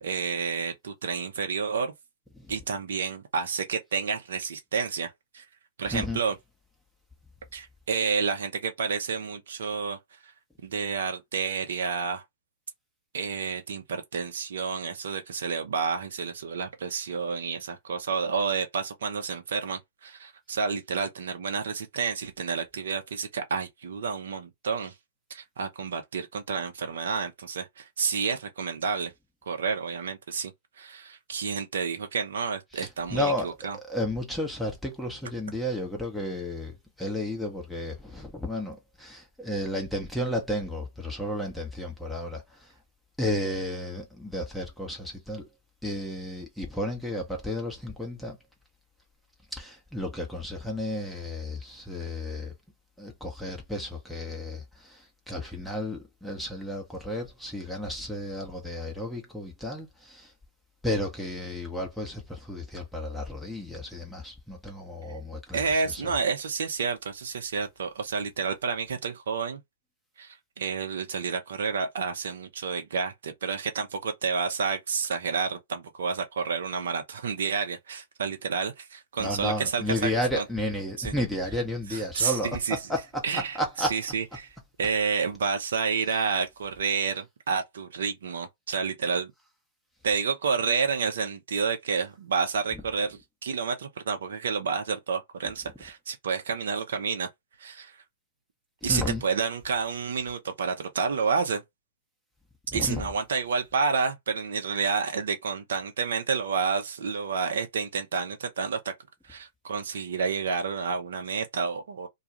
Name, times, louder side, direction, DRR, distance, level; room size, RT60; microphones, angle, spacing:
voice 1, 0.0-1.9 2.5-5.4 5.8-6.3 7.5-10.0 10.2-10.3 10.6-12.2 13.1-24.9 25.3-29.1 29.5-30.5 30.8-33.8 65.5-69.6 70.2-80.4 81.0-81.1 81.9-82.8 83.2-84.5 84.8-89.3 90.0-97.3 97.6-98.0 98.8-101.6 102.7-108.9 109.2-112.1, right 5 dB, 70° right, 0.7 m, -30 dB
voice 2, 5.9-6.2 32.7-42.7 43.2-45.5 45.8-48.4 49.5-52.5 53.0-60.3 60.8-66.2 79.2-84.0 98.8-99.2 102.7-103.1, left 1 dB, ahead, 0.9 m, -32 dB
2.3 x 2.3 x 2.9 m
hypercardioid pair, 110°, 0 cm